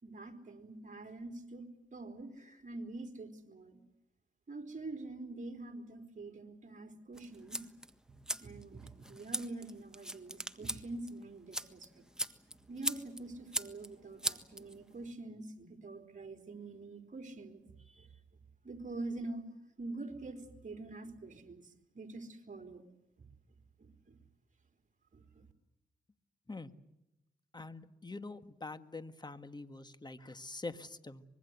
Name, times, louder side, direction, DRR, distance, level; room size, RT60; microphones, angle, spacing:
voice 1, 0.0-3.8 4.5-7.6 8.1-8.2 8.4-12.0 12.7-18.1 18.6-19.5 19.8-22.8 23.8-24.2 25.1-25.4, right 2 dB, 40° right, 6 dB, 4.1 m, -45 dB
sound 1, 7.1-15.1, right 1 dB, 5° right, 1.6 m, -41 dB
voice 2, 27.5-31.2, left 3 dB, 20° left, 11 dB, 1.7 m, -45 dB
25.0 x 22.0 x 8.2 m, 0.91 s
cardioid pair, 65°, 19 cm